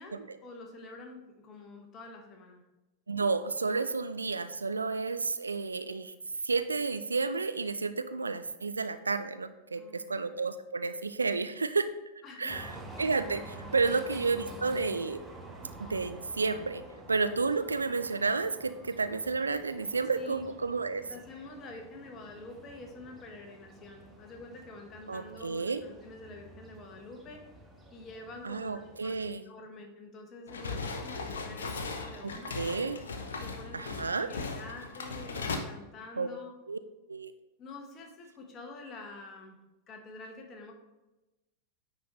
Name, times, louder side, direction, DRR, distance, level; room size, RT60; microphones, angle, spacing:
voice 1, 0.0-2.6 9.7-10.1 12.2-12.7 13.9-14.1 20.2-20.5 21.1-27.5 27.9-29.2 29.4-32.7 33.3-36.5 37.6-39.6 39.9-40.7, left 2 dB, 30° left, 2 dB, 1.2 m, -47 dB
voice 2, 3.1-6.1 6.4-11.9 12.4-12.7 13.0-15.2 15.8-16.8 17.1-21.0 25.1-25.8 28.4-29.4 32.2-33.0 33.7-34.3 36.2-36.3 36.7-36.8 37.1-37.3, right 4 dB, 75° right, 12 dB, 0.3 m, -31 dB
sound 1, 12.5-29.3, right 1 dB, 10° right, 1.0 m, -49 dB
sound 2, 30.5-35.6, left 4 dB, 65° left, 0.7 m, -38 dB
9.5 x 4.1 x 3.1 m, 1.0 s
figure-of-eight pair, 90°, 0 cm